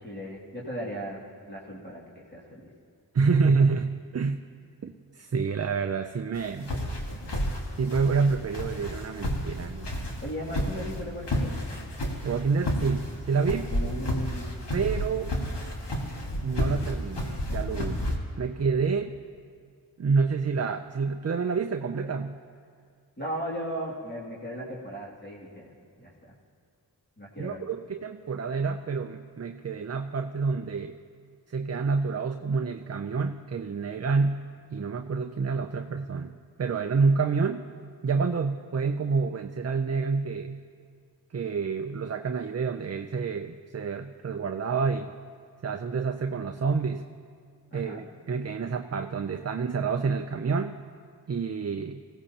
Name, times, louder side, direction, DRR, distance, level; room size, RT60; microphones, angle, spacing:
voice 1, 0.0-2.7 10.2-11.5 13.3-13.4 13.7-14.7 23.2-25.7 26.0-26.4 27.2-27.7 47.7-48.0, equal, 25° left, -6 dB, 2.4 m, -37 dB
voice 2, 3.1-4.4 4.8-6.8 7.8-9.9 12.2-13.7 14.7-15.4 16.4-19.2 20.0-22.4 27.4-31.0 31.5-34.5 34.7-36.3 36.6-37.7 38.0-40.6 41.3-45.2 45.6-47.1 47.7-50.8 51.3-52.0, right 5 dB, 40° right, 7 dB, 0.5 m, -28 dB
sound 1, 6.3-18.2, equal, 70° left, 1.9 m, -31 dB
20.5 x 16.5 x 2.9 m, 2.2 s
cardioid pair, 45°, 42 cm